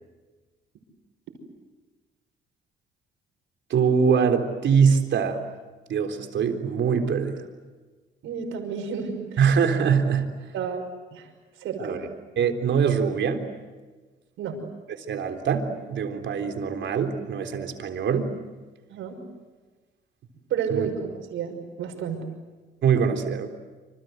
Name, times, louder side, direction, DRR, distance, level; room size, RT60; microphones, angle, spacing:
voice 1, 3.7-5.4 5.9-7.5 9.4-10.3 11.8-12.0 12.4-13.5 15.1-18.3 20.7-20.9 22.8-23.5, right 6 dB, 65° right, 5 dB, 3.7 m, -23 dB
voice 2, 8.2-9.6 10.5-10.8 11.1-11.3 11.6-12.0 14.4-14.6 18.9-19.2 20.5-22.2, right 6 dB, 85° right, 4 dB, 5.8 m, -31 dB
27.0 x 27.0 x 8.1 m, 1.3 s
cardioid pair, 90°, 20 cm